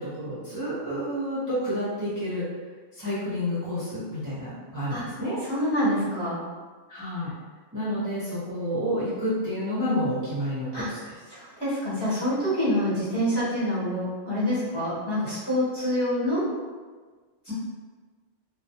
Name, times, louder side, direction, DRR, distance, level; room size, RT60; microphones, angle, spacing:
voice 1, 0.0-2.5 2.9-5.4 6.9-7.3 7.7-11.2 17.5-17.6, equal, 20° right, -12 dB, 0.5 m, -29 dB
voice 2, 5.5-6.4 10.7-10.9 11.3-16.4, equal, 25° left, -11 dB, 0.9 m, -26 dB
2.3 x 2.0 x 2.7 m, 1.4 s
omnidirectional pair, 1.1 m